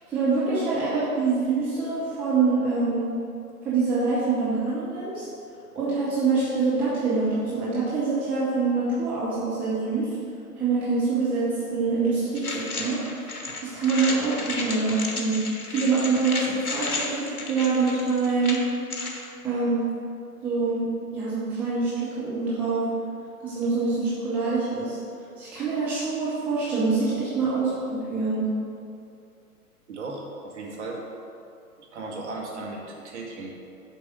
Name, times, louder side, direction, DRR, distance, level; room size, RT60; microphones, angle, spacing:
voice 1, 0.1-3.1 3.6-5.2 5.7-10.1 10.6-13.0 13.6-15.4 15.7-18.6 19.4-19.8 20.4-22.9 23.4-25.0 25.4-28.5, right 4 dB, 5° right, -10 dB, 0.5 m, -25 dB
sound 1, 12.4-19.2, left 3 dB, 70° left, 1.4 m, -33 dB
voice 2, 29.9-31.0 31.8-33.5, right 2 dB, 45° right, -2 dB, 1.8 m, -36 dB
7.2 x 4.7 x 6.6 m, 2.5 s
figure-of-eight pair, 120°, 46 cm